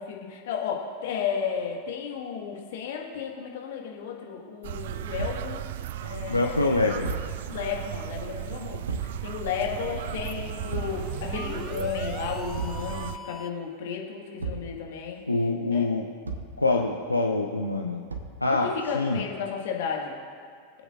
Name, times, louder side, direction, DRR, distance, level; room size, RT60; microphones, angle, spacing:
voice 1, 0.0-5.6 6.0-6.9 7.5-15.2 15.7-15.9 18.6-20.2, left 6 dB, 55° left, 0 dB, 1.6 m, -33 dB
sound 1, 4.6-13.2, right 12 dB, 55° right, 0.3 m, -35 dB
Thump thud, 5.2-5.5 7.0-7.4 8.9-9.2 10.7-11.1 12.5-12.9 14.4-14.7 16.2-16.6 18.1-18.4, right 4 dB, 75° right, 1.1 m, -34 dB
voice 2, 6.3-7.1 15.3-16.0 16.6-18.0 18.4-19.2, left 3 dB, 85° left, 1 dB, 0.6 m, -25 dB
sound 2, 9.8-13.7, left 4 dB, 15° left, 0.5 m, -42 dB
23.5 x 8.0 x 2.5 m, 2.2 s
figure-of-eight pair, 90°, 0 cm